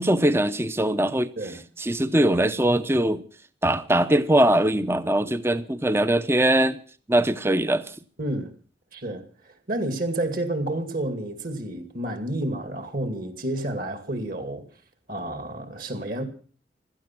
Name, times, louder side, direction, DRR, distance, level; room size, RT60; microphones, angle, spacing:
voice 1, 0.0-1.3 1.8-3.2 3.6-6.8 7.1-7.9, right 1 dB, 15° right, 0.6 m, -21 dB
voice 2, 8.2-8.5 8.9-9.2 9.7-14.6 15.1-16.2, right 1 dB, 50° right, 2.3 m, -30 dB
16.5 x 13.0 x 6.0 m
head